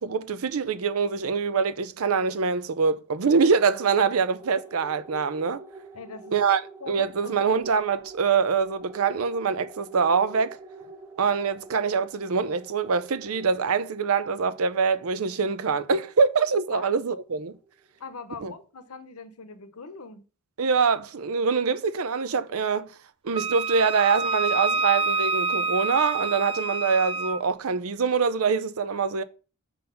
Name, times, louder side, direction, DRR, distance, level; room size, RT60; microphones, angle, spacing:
voice 1, 0.0-5.6 6.3-6.6 6.9-10.6 11.2-17.6 18.4-18.5 20.6-22.9 23.2-29.2, right 5 dB, 70° right, 0.6 m, -24 dB
sound 1, 3.3-18.1, right 3 dB, 10° right, 1.0 m, -46 dB
voice 2, 5.9-6.3 6.8-7.4 16.7-16.9 18.0-20.2, left 4 dB, 80° left, 0.9 m, -41 dB
Wind instrument woodwind instrument, 23.3-27.4, right 4 dB, 25° right, 0.4 m, -27 dB
5.4 x 4.0 x 5.7 m
head